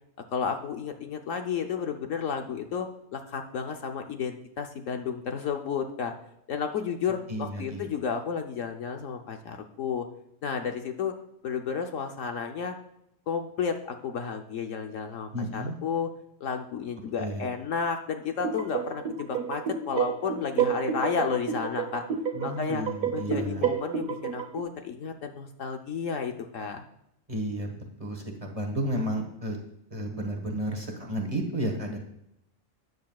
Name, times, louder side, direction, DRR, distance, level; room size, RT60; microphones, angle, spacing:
voice 1, 0.3-6.1 6.5-10.1 10.4-11.1 11.4-12.8 13.3-16.1 16.4-22.0 22.4-22.8 23.1-26.8, left 6 dB, 65° left, 5 dB, 1.1 m, -32 dB
voice 2, 7.3-7.9 15.3-15.8 17.2-17.5 22.3-23.6 27.3-29.6 29.9-32.0, right 1 dB, 25° right, 2 dB, 1.3 m, -32 dB
sound 1, 18.4-24.6, right 7 dB, 80° right, 1.4 m, -30 dB
13.0 x 9.4 x 2.3 m, 0.80 s
omnidirectional pair, 1.5 m